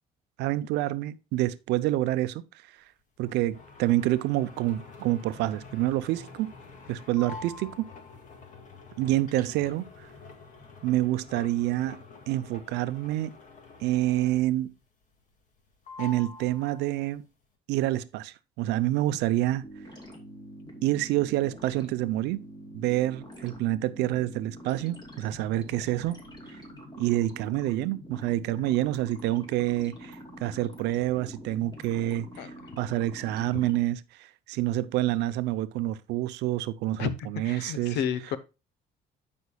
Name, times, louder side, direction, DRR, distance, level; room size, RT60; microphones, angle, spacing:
voice 1, 0.4-2.4 3.2-6.5 6.9-7.9 9.0-10.1 10.8-12.0 12.3-13.4 13.8-14.7 16.0-17.3 17.7-19.7 20.8-22.4 22.7-26.2 27.0-38.0, right 15 dB, 85° right, 0.6 m, -28 dB
sound 1, 3.2-14.7 15.0-15.6 15.9-17.2, left 4 dB, 50° left, 2.0 m, -47 dB
sound 2, 19.6-33.8, equal, 25° left, 2.9 m, -45 dB
voice 2, 37.4-38.4, left 8 dB, 90° left, 0.9 m, -31 dB
13.0 x 5.3 x 2.3 m
cardioid pair, 110°, 17 cm